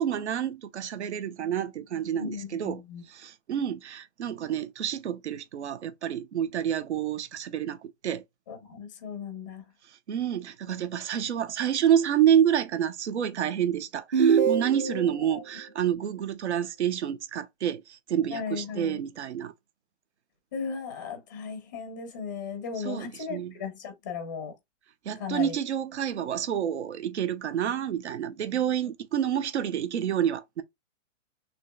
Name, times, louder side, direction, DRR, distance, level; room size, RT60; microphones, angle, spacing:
voice 1, 0.0-2.8 3.1-8.2 9.9-19.5 22.8-23.5 25.0-30.6, right 9 dB, 60° right, 0.9 m, -28 dB
voice 2, 2.1-3.0 8.5-9.6 14.8-15.4 18.3-19.0 20.5-24.5 25.2-25.6, left 6 dB, 15° left, 0.6 m, -36 dB
sound 1, 14.1-15.2, right 7 dB, 35° right, 0.9 m, -23 dB
6.2 x 2.9 x 2.2 m
hypercardioid pair, 170°, 38 cm